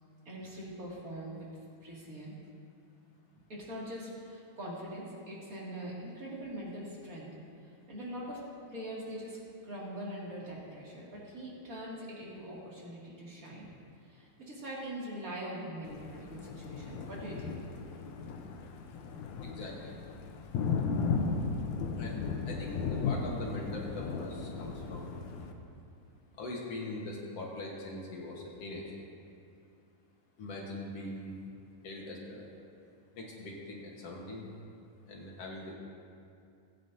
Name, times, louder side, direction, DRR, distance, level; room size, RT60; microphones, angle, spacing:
voice 1, 0.2-1.5 1.8-2.3 3.5-7.3 7.6-8.4 8.7-9.4 9.6-13.7 14.0-17.6, right 1 dB, 30° right, -6 dB, 2.2 m, -42 dB
Thunder, 15.9-25.5, left 5 dB, 75° left, 1.9 m, -36 dB
voice 2, 19.4-19.9 22.0-25.2 26.4-28.8 30.4-31.4 31.8-32.5 33.1-34.5 35.1-35.7, left 2 dB, 55° left, -2 dB, 2.0 m, -42 dB
19.0 x 9.1 x 2.7 m, 2.5 s
omnidirectional pair, 3.9 m